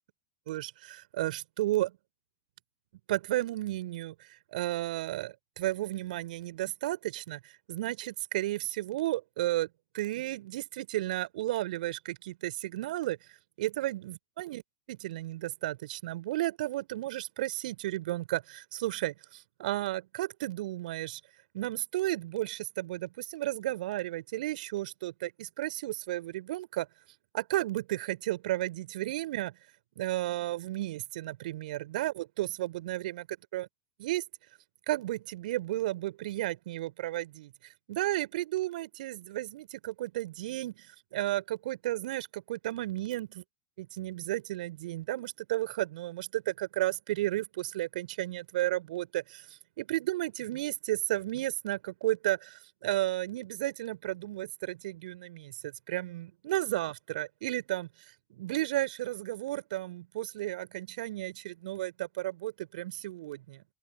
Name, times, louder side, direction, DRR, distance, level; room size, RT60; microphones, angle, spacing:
voice 1, 0.5-2.0 3.1-9.7 9.9-14.6 14.9-21.2 21.5-26.9 27.3-29.6 30.0-33.3 33.5-33.7 34.0-34.2 34.9-37.5 37.9-43.4 43.8-49.4 49.8-57.9 58.3-63.6, right 16 dB, 60° right, 3.0 m, -33 dB
open air
figure-of-eight pair, 95°, 5 cm